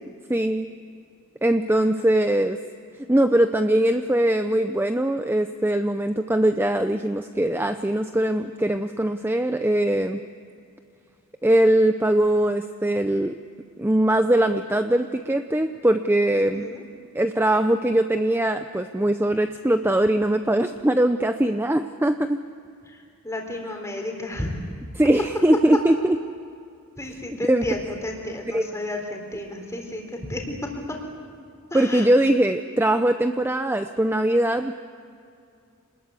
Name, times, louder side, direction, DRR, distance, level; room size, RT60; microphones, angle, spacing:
voice 1, 0.3-0.7 1.4-2.6 3.1-10.2 11.4-13.4 13.8-16.7 17.1-22.4 25.0-26.2 27.4-27.7 28.5-28.7 31.7-34.7, right 1 dB, 10° right, 8 dB, 0.5 m, -21 dB
voice 2, 16.3-16.8 22.8-24.6 27.0-31.0 31.7-32.1, left 1 dB, 15° left, 2 dB, 3.7 m, -32 dB
27.5 x 20.5 x 8.2 m, 2.5 s
head